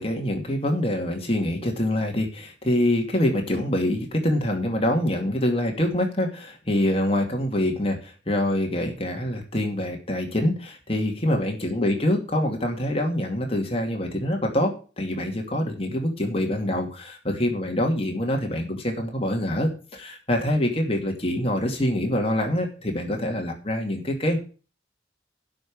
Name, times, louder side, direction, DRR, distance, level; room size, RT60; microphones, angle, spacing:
voice 1, 0.0-24.4, left 1 dB, 30° left, 2 dB, 2.4 m, -25 dB
11.5 x 5.8 x 8.6 m, 0.36 s
head